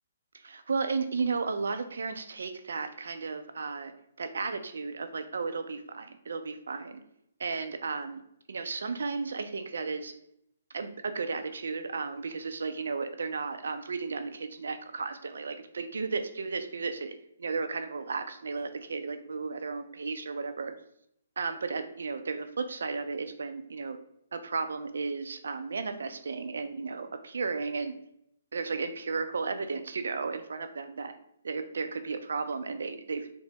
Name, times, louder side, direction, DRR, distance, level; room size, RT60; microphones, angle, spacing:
voice 1, 0.3-3.9 4.2-7.0 7.4-8.2 8.5-10.1 10.7-17.1 17.4-20.7 21.4-24.0 24.3-27.9 28.5-31.1 31.4-33.4, right 4 dB, 75° right, 8 dB, 0.4 m, -34 dB
4.5 x 2.1 x 3.2 m, 0.75 s
hypercardioid pair, 135°, 0 cm